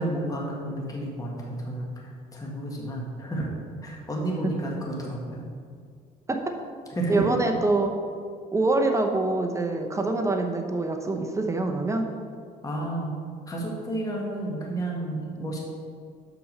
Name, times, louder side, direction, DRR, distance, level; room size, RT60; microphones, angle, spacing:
voice 1, 0.0-5.4 7.0-7.3 12.6-13.1 13.5-15.6, right 1 dB, 20° left, -2 dB, 1.7 m, -31 dB
voice 2, 7.1-7.9 8.5-12.1, right 2 dB, 15° right, 3 dB, 0.8 m, -25 dB
6.2 x 6.0 x 6.6 m, 2.1 s
cardioid pair, 110°, 17 cm